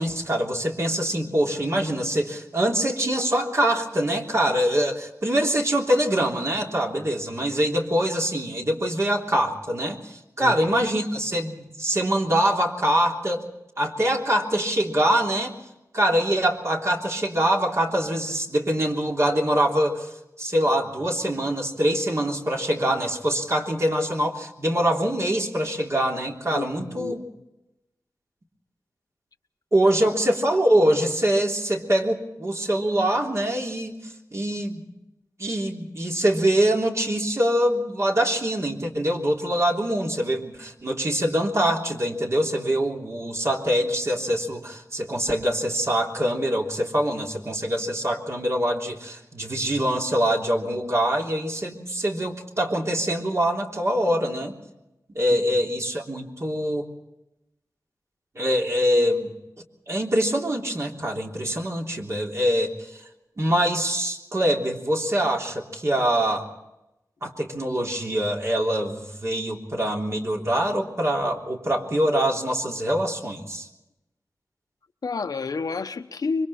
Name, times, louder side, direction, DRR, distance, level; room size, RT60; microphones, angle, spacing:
voice 1, 0.0-13.5 13.8-15.6 15.9-20.1 20.4-27.2 29.7-34.9 35.4-54.5 55.1-56.9 58.3-59.3 59.9-62.9 63.4-66.5 67.2-73.7, right 1 dB, 45° right, 3.3 m, -24 dB
voice 2, 26.5-27.1 75.0-76.5, left 4 dB, 75° left, 1.0 m, -29 dB
26.0 x 24.0 x 4.3 m
wide cardioid pair, 90°, 7 cm